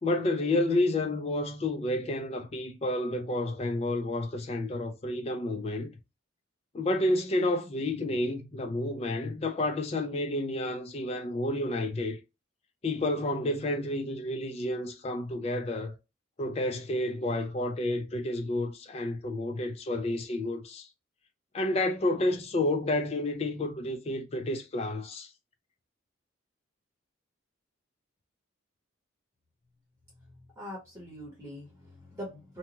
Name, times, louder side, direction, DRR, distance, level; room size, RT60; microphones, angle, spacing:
voice 1, 0.0-5.9 6.7-12.2 12.8-16.0 16.4-20.9 21.5-25.3, left 1 dB, 30° left, 0.4 m, -30 dB
voice 2, 30.6-32.6, equal, 15° right, 0.9 m, -42 dB
2.6 x 2.2 x 2.9 m
head